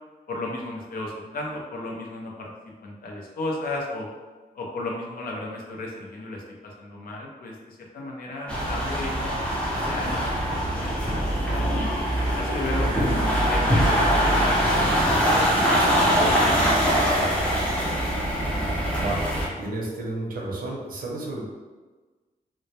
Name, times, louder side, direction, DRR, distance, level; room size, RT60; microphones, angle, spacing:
voice 1, 0.3-4.1 4.5-11.9 12.3-15.5, left 2 dB, 70° left, -1 dB, 0.5 m, -35 dB
sound 1, 8.5-19.5, equal, 10° left, 0.5 m, -23 dB
voice 2, 19.0-19.3 19.6-21.5, right 2 dB, 65° right, -2 dB, 0.6 m, -31 dB
2.1 x 2.1 x 2.7 m, 1.3 s
wide cardioid pair, 155°, 16 cm